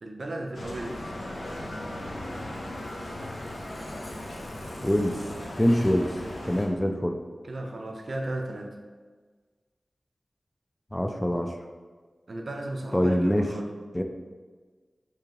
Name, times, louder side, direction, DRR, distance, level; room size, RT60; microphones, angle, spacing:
voice 1, 0.0-1.1 7.4-8.7 12.3-13.7, right 1 dB, 70° right, 3 dB, 0.4 m, -35 dB
Bicycle, 0.5-6.7, left 1 dB, 85° left, 0.5 m, -37 dB
voice 2, 4.8-5.2 5.6-6.1 6.5-7.2 10.9-11.5 12.9-13.5 13.9-14.0, equal, 20° left, 4 dB, 0.3 m, -24 dB
2.9 x 2.8 x 3.6 m, 1.4 s
cardioid pair, 50°, 0 cm